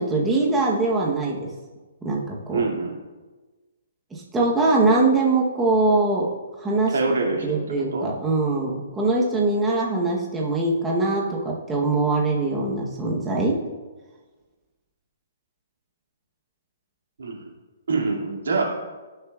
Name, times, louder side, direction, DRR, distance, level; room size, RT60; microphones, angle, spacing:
voice 1, 0.0-1.5 2.0-2.7 4.1-6.3 6.6-7.0 7.4-13.6, right 2 dB, 10° right, -3 dB, 0.9 m, -22 dB
voice 2, 2.5-3.0 6.9-7.6 7.9-8.1 17.2-17.5 17.9-18.6, right 3 dB, 85° right, 0 dB, 2.2 m, -25 dB
17.0 x 6.6 x 2.4 m, 1.3 s
hypercardioid pair, 170°, 0 cm